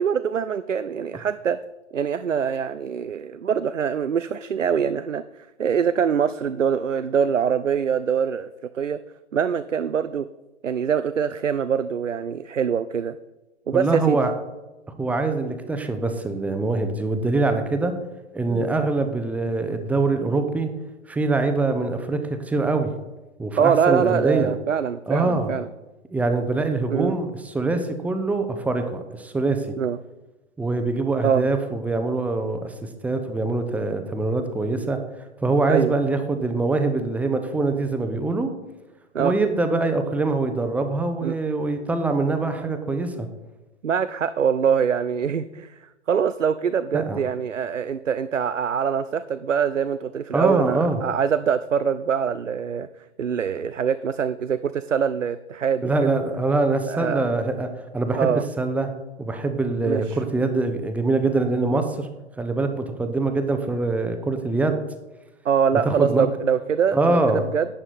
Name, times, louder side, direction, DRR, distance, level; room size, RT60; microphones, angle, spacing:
voice 1, 0.0-1.6 1.9-5.2 5.6-8.5 8.7-9.0 9.3-10.3 10.6-13.2 13.7-14.2 18.5-18.7 23.6-25.7 26.9-27.2 29.8-30.0 31.2-31.4 35.7-36.0 39.1-39.3 41.2-41.4 43.8-45.8 46.1-52.9 53.2-56.2 56.9-57.2 58.2-58.4 59.8-60.2 65.4-67.2 67.5-67.7, right 7 dB, 90° right, 13 dB, 0.5 m, -24 dB
voice 2, 13.7-14.3 15.0-17.9 18.3-20.7 21.1-22.9 23.4-24.5 25.1-25.5 26.1-29.8 30.6-35.0 35.4-38.5 39.2-43.3 46.9-47.2 50.3-51.0 55.8-58.9 59.2-62.1 62.4-64.8 65.8-66.3 66.9-67.4, right 3 dB, 5° right, 7 dB, 0.7 m, -24 dB
11.5 x 8.7 x 4.2 m, 1.1 s
figure-of-eight pair, 110°, 36 cm